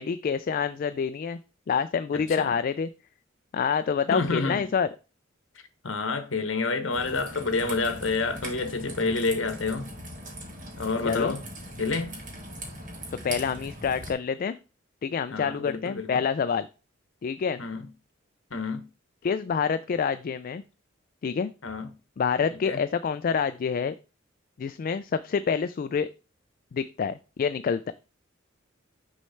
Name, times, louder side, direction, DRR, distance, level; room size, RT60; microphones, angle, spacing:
voice 1, 0.0-1.4 1.7-2.9 3.5-4.9 11.0-11.4 13.2-14.6 15.0-16.7 17.2-17.6 19.2-20.6 21.2-21.5 22.2-23.9 24.6-26.1 26.7-27.9, left 6 dB, 45° left, 0.3 m, -27 dB
voice 2, 2.1-2.5 4.1-4.7 5.8-9.9 10.8-11.4 11.8-12.2 15.3-16.2 17.6-17.9 18.5-18.9 21.6-21.9 22.5-22.8, left 3 dB, 75° left, 1.1 m, -29 dB
Raindrop / Trickle dribble, 6.9-14.1, right 1 dB, 40° right, 1.5 m, -40 dB
6.3 x 3.2 x 5.7 m
head